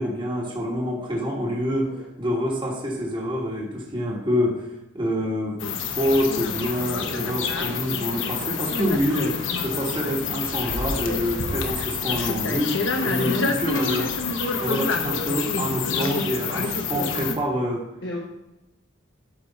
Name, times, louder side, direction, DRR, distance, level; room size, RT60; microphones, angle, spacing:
voice 1, 0.0-4.7 4.9-5.6 6.0-14.1 14.6-17.9, equal, 25° right, -2 dB, 1.5 m, -26 dB
voice 2, 5.0-5.4 18.0-18.2, left 1 dB, 60° left, -3 dB, 1.2 m, -37 dB
sound 1, 5.6-17.3, left 5 dB, 80° left, 1.0 m, -27 dB
12.0 x 4.9 x 4.1 m, 0.96 s
head